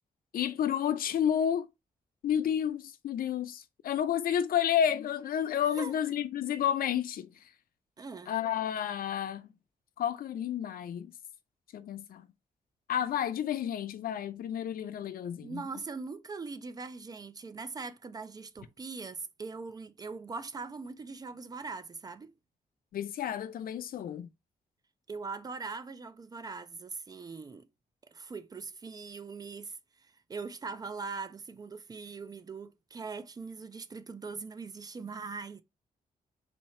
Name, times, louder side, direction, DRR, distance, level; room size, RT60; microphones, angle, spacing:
voice 1, 0.3-1.7 2.2-7.5 8.3-9.5 10.0-11.1 11.7-12.3 12.9-15.6 22.9-24.3, left 9 dB, 70° left, 0.6 m, -31 dB
voice 2, 8.0-8.3 15.4-22.3 25.1-27.7 28.0-35.6, right 4 dB, 25° right, 0.4 m, -41 dB
4.3 x 2.7 x 4.2 m
wide cardioid pair, 170°, 15 cm